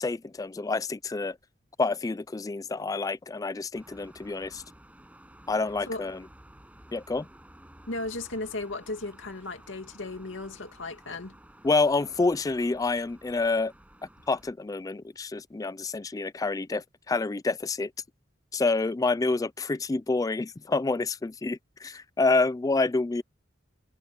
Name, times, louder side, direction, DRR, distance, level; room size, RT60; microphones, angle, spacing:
voice 1, 0.0-1.4 1.8-4.6 5.5-6.2 6.9-7.3 11.6-13.7 14.3-17.9 18.5-23.2, left 3 dB, 20° left, 0.3 m, -28 dB
sound 1, 3.7-14.5, right 1 dB, 10° right, 6.3 m, -53 dB
voice 2, 7.9-11.4, left 2 dB, 80° left, 2.5 m, -36 dB
head